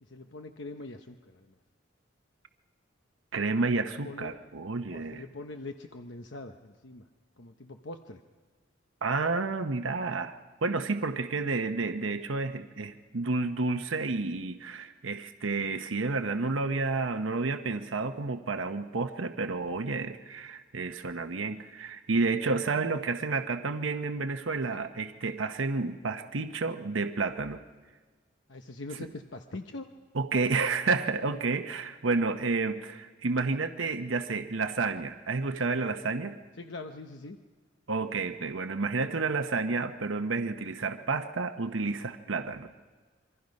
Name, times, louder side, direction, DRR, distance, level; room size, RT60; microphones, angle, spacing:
voice 1, 0.0-1.6 4.0-4.4 4.9-7.0 7.4-8.2 24.7-24.8 28.5-29.9 36.6-37.4, left 2 dB, 70° left, 5 dB, 1.0 m, -43 dB
voice 2, 3.3-5.2 9.0-27.6 30.1-36.4 37.9-42.7, right 3 dB, 90° right, 7 dB, 0.9 m, -30 dB
27.0 x 24.0 x 5.4 m, 1.4 s
head